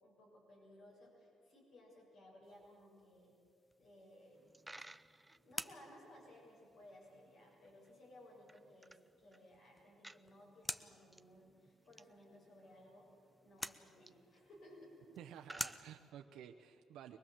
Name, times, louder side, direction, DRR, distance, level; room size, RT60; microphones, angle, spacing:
voice 1, 0.0-3.4 3.8-4.5 5.3-13.1 13.4-15.2, left 1 dB, 70° left, -4 dB, 6.8 m, -60 dB
sound 1, 2.4-16.1, left 1 dB, 15° left, 0.8 m, -52 dB
Coin (dropping), 4.4-16.6, right 1 dB, 10° right, 0.5 m, -62 dB
voice 2, 15.2-17.2, right 10 dB, 85° right, 5 dB, 0.7 m, -53 dB
24.0 x 19.5 x 7.5 m, 2.3 s
cardioid pair, 90°, 0 cm